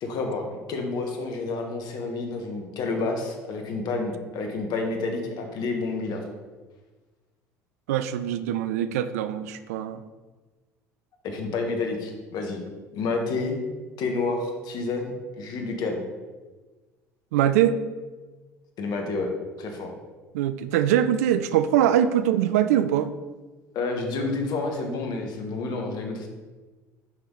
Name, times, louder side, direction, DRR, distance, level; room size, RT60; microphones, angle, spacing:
voice 1, 0.0-6.3 11.2-12.6 12.9-13.6 14.0-16.0 18.8-19.3 19.6-19.9 23.7-26.3, left 3 dB, 55° left, 3 dB, 1.4 m, -29 dB
voice 2, 7.9-10.0 17.3-17.8 20.3-23.1, right 10 dB, 70° right, 12 dB, 0.4 m, -22 dB
6.2 x 5.8 x 3.8 m, 1.3 s
figure-of-eight pair, 60°, 9 cm